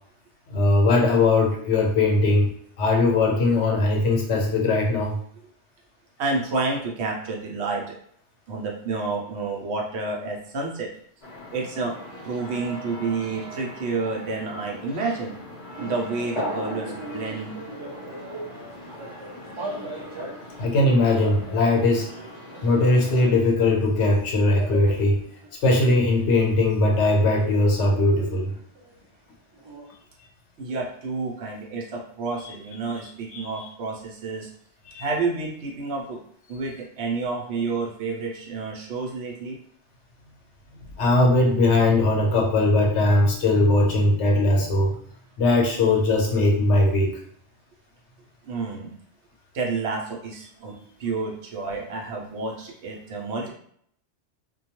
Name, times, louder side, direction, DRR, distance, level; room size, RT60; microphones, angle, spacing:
voice 1, 0.5-2.5 2.8-5.2 20.6-22.1 22.6-25.2 25.6-28.5 33.3-33.5 34.9-35.0 41.0-45.0 45.4-47.2 50.7-50.8, left 2 dB, 85° left, 0 dB, 1.0 m, -20 dB
voice 2, 6.2-7.9 8.5-10.9 11.5-11.9 12.2-15.4 15.8-17.5 30.6-34.5 35.0-36.2 36.5-39.6 48.4-48.9 49.5-53.5, right 3 dB, 70° right, -1 dB, 0.9 m, -29 dB
sound 1, 11.2-23.3, left 1 dB, 40° left, 0.7 m, -39 dB
sound 2, 15.7-23.8 24.1-29.0 29.5-29.9, right 1 dB, 40° right, 0.4 m, -39 dB
2.3 x 2.2 x 2.8 m, 0.65 s
omnidirectional pair, 1.2 m